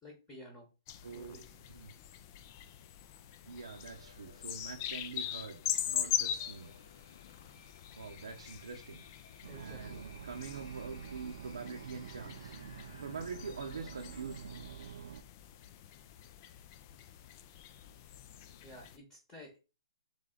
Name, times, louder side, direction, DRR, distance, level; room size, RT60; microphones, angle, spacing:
voice 1, 0.0-0.7 1.0-1.5 9.5-10.1 18.6-19.6, left 1 dB, 10° left, 0 dB, 1.0 m, -52 dB
sound 1, 0.9-19.0, left 11 dB, 30° left, 0.3 m, -42 dB
voice 2, 1.0-1.4 1.7-1.9 3.4-6.7 7.9-9.0 9.5-12.5 13.0-14.6, right 5 dB, 80° right, 1 dB, 0.7 m, -45 dB
sound 2, 3.6-14.2, left 5 dB, 60° left, 0.8 m, -58 dB
sound 3, 9.4-15.2, right 9 dB, 60° right, 0.3 m, -48 dB
3.5 x 3.3 x 3.8 m, 0.31 s
hypercardioid pair, 155°, 3 cm